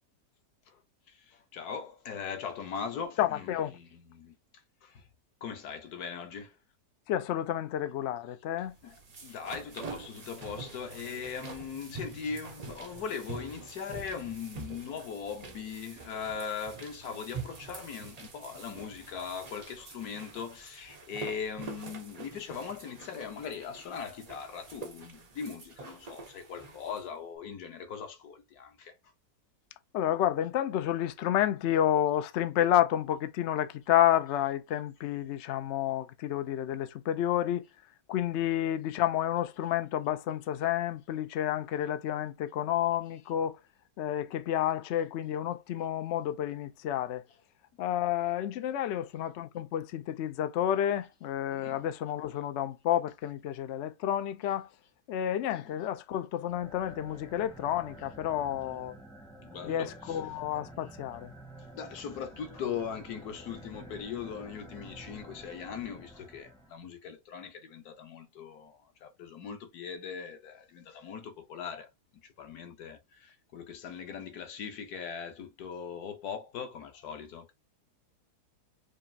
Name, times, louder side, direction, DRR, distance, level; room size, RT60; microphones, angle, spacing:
voice 1, 1.1-4.4 4.8-5.0 5.4-6.6 8.6-28.9 48.7-48.8 51.5-51.8 55.5-55.8 59.4-60.2 61.7-77.5, left 6 dB, 65° left, 1.3 m, -40 dB
voice 2, 3.2-3.7 7.1-8.7 29.9-37.6 38.1-43.6 44.0-47.2 47.8-54.7 55.1-58.9 59.6-61.3, left 11 dB, 85° left, 0.6 m, -30 dB
sound 1, 8.7-27.1, right 4 dB, 60° right, 0.4 m, -46 dB
sound 2, 56.4-66.9, right 1 dB, 5° left, 0.5 m, -50 dB
5.1 x 2.5 x 2.7 m
omnidirectional pair, 1.8 m